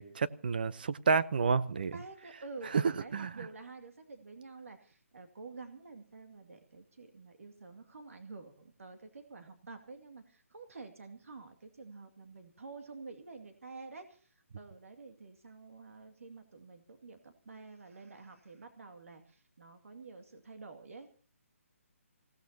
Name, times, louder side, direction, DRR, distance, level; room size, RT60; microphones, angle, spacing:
voice 1, 0.0-1.9 2.7-2.8 3.1-3.3, right 5 dB, 40° right, 0.7 m, -29 dB
voice 2, 1.9-21.1, right 3 dB, 70° right, 2.3 m, -49 dB
28.5 x 17.0 x 2.8 m
hypercardioid pair, 175°, 8 cm